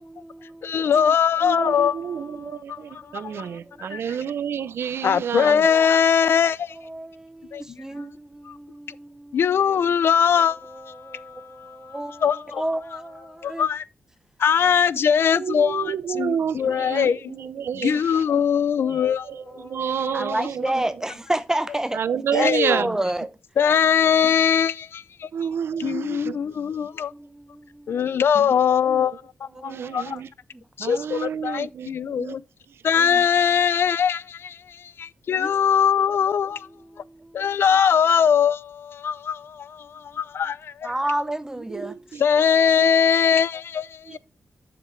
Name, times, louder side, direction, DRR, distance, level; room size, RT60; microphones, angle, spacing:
voice 1, 0.0-1.2 1.5-1.6 2.1-2.5 3.1-4.0 6.7-9.4 10.7-12.2 12.6-13.7 19.5-19.8 20.1-22.0 22.3-23.3 27.1-28.0 29.6-30.2 31.3-31.5 35.4-35.5 36.9-37.4 40.8-41.9, right 1 dB, 15° right, 0.5 m, -31 dB
voice 2, 0.6-2.0 2.7-2.8 3.1-3.2 3.8-4.0 5.0-6.8 7.5-7.8 8.4-8.6 9.3-12.6 13.4-13.8 14.4-15.8 16.2-17.3 17.8-19.7 22.3-22.8 23.6-25.3 25.8-27.1 27.9-30.2 30.8-32.4 32.8-36.7 37.3-40.9 42.2-44.2, left 7 dB, 75° left, 0.4 m, -21 dB
voice 3, 1.4-5.7 14.6-14.9 15.3-18.4 18.8-21.0 21.9-23.0 25.3-26.4 28.3-28.5 28.8-29.1 29.6-30.3 30.8-32.4 32.7-33.3 41.6-42.2 42.8-42.9 44.1-44.2, right 8 dB, 80° right, 0.5 m, -30 dB
7.5 x 7.2 x 3.2 m
cardioid pair, 90°, 4 cm